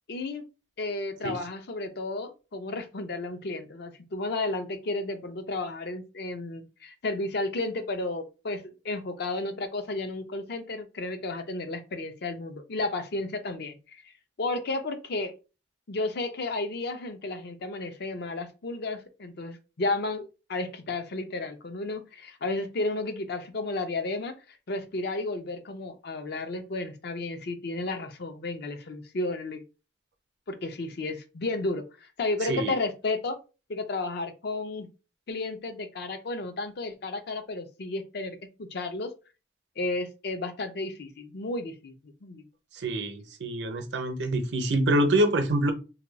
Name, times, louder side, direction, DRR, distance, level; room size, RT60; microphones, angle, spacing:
voice 1, 0.1-0.4 0.8-14.1 14.4-15.3 15.9-24.3 24.7-29.6 30.5-33.4 33.7-34.9 35.3-39.1 39.8-42.4, left 2 dB, 60° left, 7 dB, 0.6 m, -33 dB
voice 2, 42.7-45.7, right 1 dB, 70° right, 7 dB, 0.7 m, -26 dB
2.8 x 2.2 x 3.9 m, 0.31 s
head